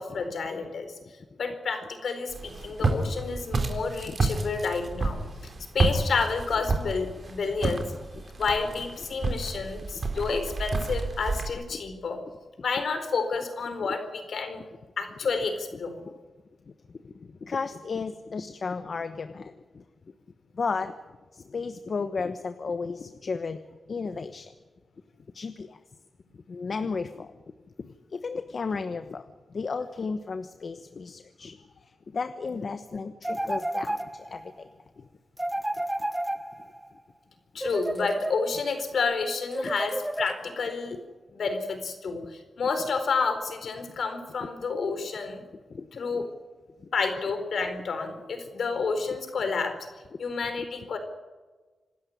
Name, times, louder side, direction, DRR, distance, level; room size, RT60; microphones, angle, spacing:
voice 1, 0.0-7.9 8.4-12.2 12.6-14.6 15.0-16.2 32.5-32.6 37.5-41.0 41.3-45.4 45.9-46.3 46.9-49.9 50.2-51.0, left 4 dB, 70° left, 8 dB, 4.4 m, -30 dB
Walk footsteps, 2.3-11.5, right 3 dB, 45° right, 3.8 m, -30 dB
voice 2, 16.7-17.1 17.4-19.8 20.5-20.9 21.3-23.6 23.9-24.5 25.3-25.8 26.5-27.3 27.8-31.6 32.1-34.7 35.0-35.1 45.7-45.9 46.8-46.9, left 4 dB, 50° left, 9 dB, 1.1 m, -34 dB
sound 1, 33.2-34.5 35.4-36.9 37.6-38.8 39.5-40.7, right 1 dB, 10° right, 1.0 m, -32 dB
26.5 x 13.0 x 9.8 m, 1.3 s
wide cardioid pair, 105°, 0 cm